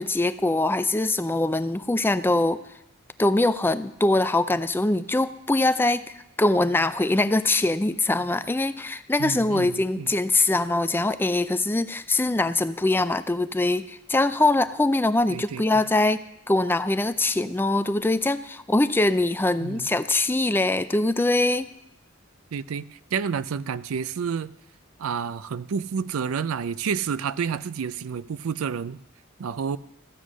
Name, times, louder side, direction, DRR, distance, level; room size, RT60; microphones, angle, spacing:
voice 1, 0.0-2.6 3.2-16.2 16.5-21.7, left 2 dB, 10° left, 12 dB, 0.4 m, -23 dB
voice 2, 9.2-10.1 15.3-15.6 19.6-19.9 22.5-24.5 25.0-29.0 29.4-29.8, right 6 dB, 90° right, 16 dB, 0.4 m, -29 dB
14.5 x 8.2 x 6.2 m, 0.83 s
head